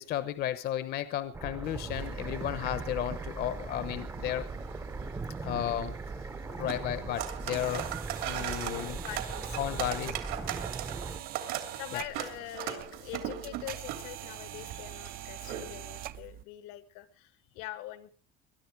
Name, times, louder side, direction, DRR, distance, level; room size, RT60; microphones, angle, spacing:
voice 1, 0.0-4.4 5.4-6.0 6.5-7.9 8.2-9.0 9.6-10.1 11.9-12.0, left 12 dB, 50° left, 12 dB, 1.0 m, -33 dB
sound 1, 1.3-11.2, right 3 dB, 15° right, 0.7 m, -39 dB
sound 2, 1.6-16.1, right 11 dB, 75° right, 3.0 m, -41 dB
sound 3, 7.3-16.4, right 12 dB, 45° right, 0.7 m, -44 dB
voice 2, 8.6-10.0 10.4-10.8 11.1-18.1, left 15 dB, 85° left, 11 dB, 1.7 m, -44 dB
22.0 x 11.0 x 4.8 m, 0.42 s
cardioid pair, 160°, 21 cm